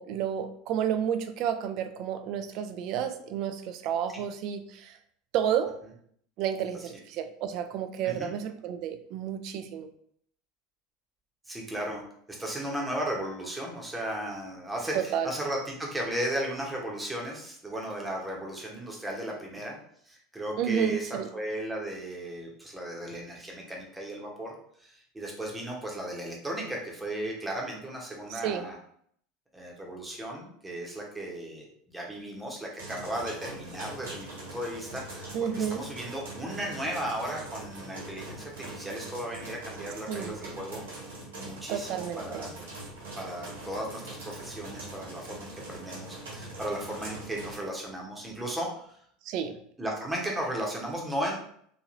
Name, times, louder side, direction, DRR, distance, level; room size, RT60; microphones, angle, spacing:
voice 1, 0.0-5.0 5.3-5.8 6.4-9.9 14.9-15.3 20.6-21.3 28.3-28.7 35.3-35.8 40.1-40.4 41.7-42.5 49.2-49.6, right 9 dB, 55° right, 9 dB, 0.3 m, -31 dB
voice 2, 11.5-12.0 12.3-19.8 20.1-28.8 29.5-35.3 35.5-40.8 41.3-42.5 43.2-49.0 49.8-51.4, right 1 dB, 10° right, -1 dB, 0.9 m, -35 dB
sound 1, 32.8-47.6, right 2 dB, 75° right, 1.4 m, -42 dB
3.0 x 2.7 x 2.5 m, 0.65 s
figure-of-eight pair, 75°, 0 cm